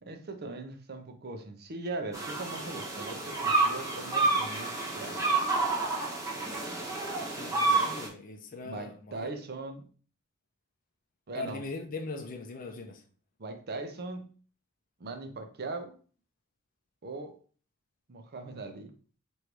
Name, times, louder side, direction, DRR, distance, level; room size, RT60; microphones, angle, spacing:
voice 1, 0.0-5.3 8.6-9.8 11.3-11.6 13.4-14.4 15.0-15.9 17.0-17.4 18.1-18.9, right 3 dB, 50° right, 0.6 m, -40 dB
sound 1, 2.1-8.1, right 3 dB, 15° right, 1.0 m, -29 dB
voice 2, 7.3-9.3 11.4-13.0, left 3 dB, 40° left, 0.5 m, -40 dB
3.1 x 2.6 x 4.5 m
head